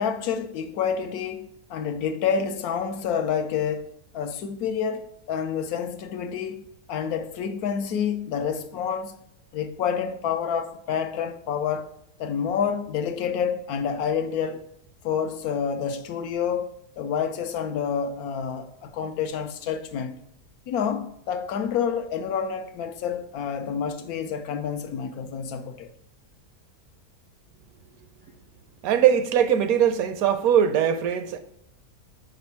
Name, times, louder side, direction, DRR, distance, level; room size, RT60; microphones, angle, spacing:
voice 1, 0.0-6.6 6.9-9.2 9.5-11.9 12.2-14.6 15.0-20.2 20.7-25.9, left 7 dB, 75° left, 1.1 m, -28 dB
voice 2, 28.8-31.4, right 9 dB, 75° right, 1.0 m, -21 dB
5.2 x 5.0 x 5.7 m
omnidirectional pair, 1.6 m